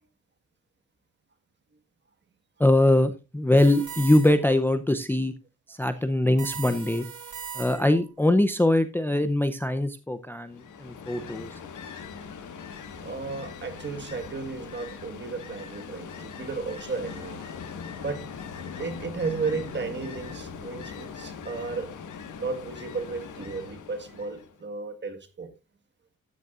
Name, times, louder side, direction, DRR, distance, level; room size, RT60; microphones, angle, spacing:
voice 1, 2.6-5.3 5.7-7.1 7.5-11.5, left 1 dB, 5° left, 0.6 m, -22 dB
sound 1, 3.6-4.6 6.4-8.1, right 8 dB, 85° right, 3.9 m, -39 dB
Ocean, 10.5-24.6, left 6 dB, 80° left, 1.7 m, -41 dB
voice 2, 12.9-17.5 18.0-18.3 18.8-21.9 22.4-25.5, right 4 dB, 35° right, 1.6 m, -34 dB
13.5 x 9.4 x 2.4 m
wide cardioid pair, 135°, 30 cm